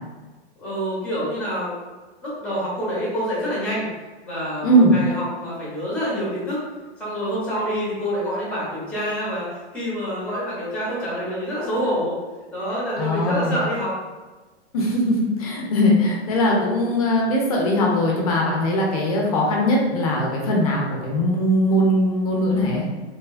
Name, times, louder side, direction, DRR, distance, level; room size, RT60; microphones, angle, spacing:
voice 1, 0.6-1.7 2.2-3.9 4.2-6.6 7.0-9.4 9.7-12.2 12.5-13.9, equal, 5° left, -7 dB, 0.7 m, -26 dB
voice 2, 4.6-4.9 13.0-13.6 14.7-22.9, equal, 35° left, -2 dB, 0.4 m, -20 dB
2.7 x 2.1 x 2.3 m, 1.3 s
hypercardioid pair, 140°, 34 cm